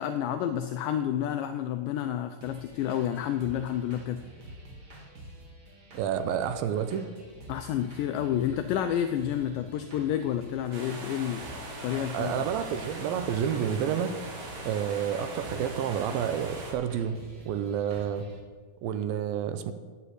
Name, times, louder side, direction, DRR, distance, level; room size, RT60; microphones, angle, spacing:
voice 1, 0.0-4.2 7.5-11.4 11.8-12.4, left 10 dB, 85° left, 8 dB, 1.9 m, -30 dB
sound 1, 2.4-18.4, right 1 dB, 45° right, 1.3 m, -48 dB
voice 2, 5.9-7.0 11.9-14.1 14.6-17.2 17.4-18.3 18.8-19.7, right 8 dB, 85° right, 10 dB, 2.4 m, -29 dB
sound 2, 10.7-16.7, right 2 dB, 65° right, 3.4 m, -40 dB
8.8 x 8.2 x 7.9 m, 1.5 s
omnidirectional pair, 4.2 m